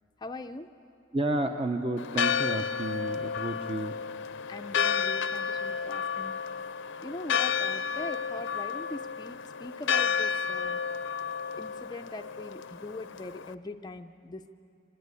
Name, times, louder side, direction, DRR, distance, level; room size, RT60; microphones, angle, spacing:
voice 1, 0.2-0.7 4.5-6.3 7.0-10.8 11.6-14.5, left 2 dB, 20° left, 6 dB, 0.5 m, -41 dB
voice 2, 1.1-3.9, right 2 dB, 30° right, 6 dB, 0.7 m, -31 dB
Church bell, 2.0-13.5, left 6 dB, 65° left, 0.6 m, -31 dB
25.5 x 20.5 x 9.7 m, 2.8 s
head